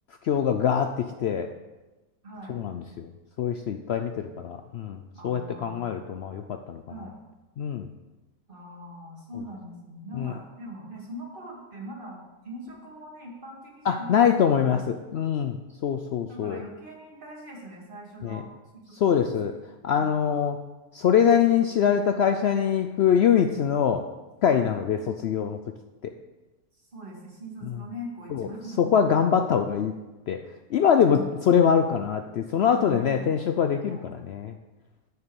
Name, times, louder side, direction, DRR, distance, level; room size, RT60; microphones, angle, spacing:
voice 1, 0.2-1.5 2.5-3.1 3.4-6.8 7.6-7.9 10.2-10.3 13.9-15.6 15.8-16.6 18.2-18.4 19.0-19.5 19.8-20.6 20.9-24.0 24.4-25.6 26.0-26.1 28.3-28.5 28.8-29.9 30.3-30.4 30.7-31.2 31.5-34.0 34.3-34.5, left 8 dB, 75° left, 6 dB, 0.5 m, -23 dB
voice 2, 2.2-2.6 5.1-6.0 6.9-7.2 8.5-14.9 16.3-19.2 20.0-20.4 24.5-24.7 26.7-28.8 31.1-31.3 32.7-33.3 33.9-34.1, equal, 35° right, -2 dB, 2.3 m, -41 dB
6.7 x 6.7 x 6.9 m, 1.1 s
omnidirectional pair, 1.6 m